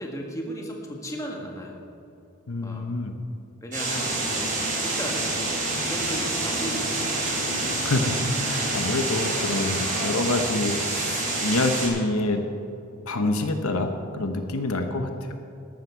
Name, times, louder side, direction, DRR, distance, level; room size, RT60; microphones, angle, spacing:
voice 1, 0.0-1.8 2.6-2.9 3.6-5.2 5.8-7.9, equal, 15° left, 0 dB, 1.6 m, -36 dB
voice 2, 2.5-3.1 7.8-12.4 13.1-15.4, left 2 dB, 75° left, 6 dB, 0.9 m, -27 dB
sound 1, 3.7-11.9, right 2 dB, 35° right, 3.4 m, -27 dB
13.5 x 12.5 x 4.6 m, 2.7 s
head